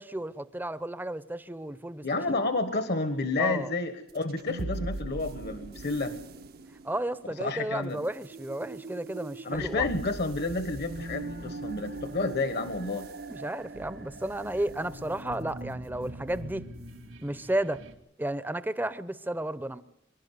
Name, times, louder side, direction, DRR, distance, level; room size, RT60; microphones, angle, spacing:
voice 1, 0.0-2.2 3.4-3.7 6.8-9.9 13.3-16.6 17.2-17.8 18.2-19.8, right 1 dB, 10° right, 0.7 m, -33 dB
voice 2, 2.0-6.2 7.2-8.0 9.4-13.1, left 3 dB, 60° left, 1.3 m, -30 dB
sound 1, 4.1-14.6, right 2 dB, 55° right, 0.7 m, -42 dB
sound 2, 9.5-17.9, right 1 dB, 80° right, 2.4 m, -43 dB
24.5 x 11.5 x 9.5 m
head